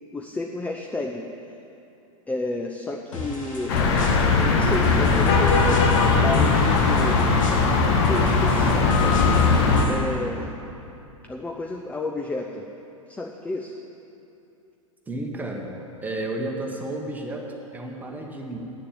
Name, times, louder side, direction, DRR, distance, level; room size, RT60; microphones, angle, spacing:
voice 1, 0.1-1.3 2.3-3.8 4.4-5.8 6.2-7.4 8.1-9.2 9.9-10.6 11.3-12.6 13.1-13.7, left 2 dB, 10° left, 2 dB, 0.6 m, -31 dB
sound 1, 3.1-10.0, left 2 dB, 65° left, 2.3 m, -36 dB
sound 2, 3.7-9.9, left 4 dB, 50° left, 1.4 m, -19 dB
voice 2, 15.1-15.8 16.0-18.6, right 2 dB, 10° right, 0 dB, 1.4 m, -32 dB
9.4 x 6.7 x 8.9 m, 2.8 s
figure-of-eight pair, 95°, 18 cm